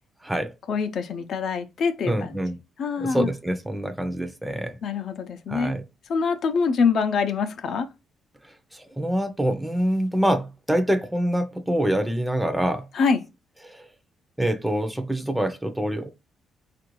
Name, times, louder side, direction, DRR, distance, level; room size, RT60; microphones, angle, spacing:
voice 1, 0.7-2.3 2.8-3.3 4.8-5.7 6.1-7.9 12.9-13.2, left 5 dB, 60° left, 0.5 m, -24 dB
voice 2, 2.0-2.6 3.0-4.8 5.5-5.8 8.4-12.9 13.6-13.9 14.4-16.1, right 1 dB, 5° right, 0.5 m, -25 dB
4.3 x 2.5 x 3.0 m
cardioid pair, 90°, 0 cm